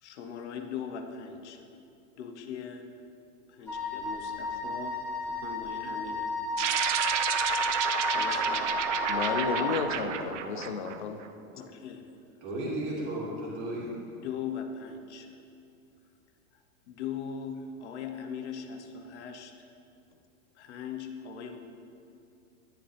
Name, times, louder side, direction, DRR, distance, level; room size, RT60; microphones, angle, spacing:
voice 1, 0.0-1.6 2.2-2.9 3.5-6.3 8.1-8.8 11.5-12.1 14.2-15.4 16.5-19.5 20.5-21.6, left 7 dB, 50° left, 6 dB, 1.0 m, -40 dB
Wind instrument woodwind instrument, 3.7-9.8, left 3 dB, 5° left, 1.2 m, -33 dB
sound 1, 6.6-11.3, right 8 dB, 55° right, 0.7 m, -30 dB
voice 2, 9.1-11.2, left 6 dB, 35° left, 8 dB, 0.4 m, -32 dB
voice 3, 12.4-13.9, right 1 dB, 25° right, -4 dB, 2.3 m, -34 dB
13.0 x 10.5 x 3.4 m, 2.5 s
supercardioid pair, 180°, 43 cm